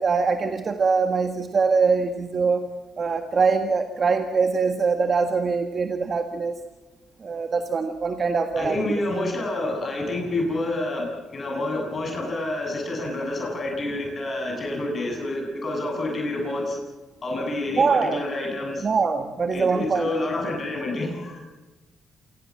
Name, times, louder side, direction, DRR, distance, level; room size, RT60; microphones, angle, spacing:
voice 1, 0.0-2.7 3.0-6.6 7.2-9.0 17.8-18.2 18.8-20.1, right 5 dB, 40° right, 7 dB, 1.8 m, -23 dB
voice 2, 8.6-16.8 17.2-18.9 19.5-21.4, left 2 dB, 40° left, 1 dB, 7.9 m, -28 dB
27.5 x 19.5 x 7.6 m, 1.2 s
cardioid pair, 90°, 0 cm